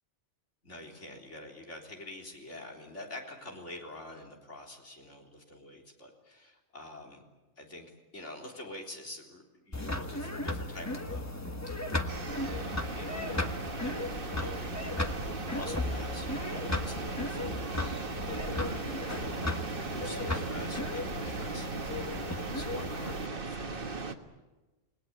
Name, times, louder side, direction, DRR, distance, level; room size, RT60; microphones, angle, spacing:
voice 1, 0.6-7.2 7.6-11.3 11.6-12.0 12.3-18.8 19.1-19.4 19.7-23.8, left 1 dB, 75° left, 1 dB, 4.1 m, -47 dB
sound 1, 9.7-23.3, left 2 dB, 15° left, 1.3 m, -35 dB
sound 2, 12.1-24.1, right 3 dB, 50° right, 1.7 m, -38 dB
29.0 x 19.5 x 8.6 m, 1.1 s
omnidirectional pair, 1.2 m